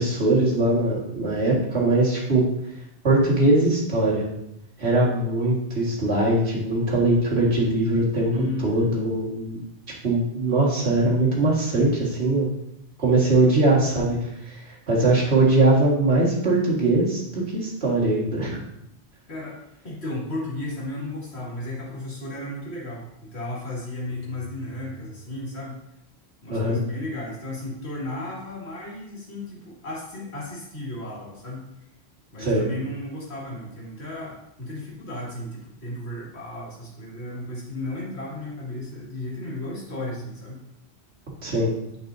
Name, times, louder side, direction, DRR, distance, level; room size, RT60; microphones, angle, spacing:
voice 1, 0.0-2.4 3.0-4.2 4.8-8.3 8.6-9.6 10.0-12.5 13.0-18.7 26.5-26.8 32.4-32.6 41.4-41.7, right 2 dB, 70° right, -4 dB, 2.1 m, -21 dB
voice 2, 8.3-8.9 19.3-19.6 19.8-25.8 26.4-31.6 32.3-40.6, left 1 dB, 70° left, -5 dB, 2.5 m, -34 dB
9.8 x 5.4 x 2.7 m, 0.81 s
omnidirectional pair, 1.1 m